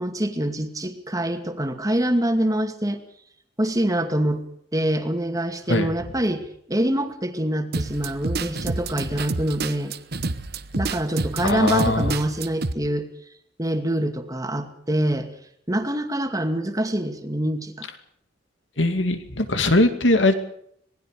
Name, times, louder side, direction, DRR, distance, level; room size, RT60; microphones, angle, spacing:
voice 1, 0.0-3.0 3.6-4.4 4.7-9.9 10.7-13.1 13.6-15.3 15.7-17.9, right 1 dB, 20° right, 6 dB, 2.3 m, -25 dB
sound 1, 7.7-12.7, right 3 dB, 60° right, 1.2 m, -28 dB
voice 2, 11.4-12.2 18.8-20.3, left 2 dB, 80° left, 8 dB, 2.5 m, -20 dB
26.0 x 20.0 x 5.0 m, 0.67 s
head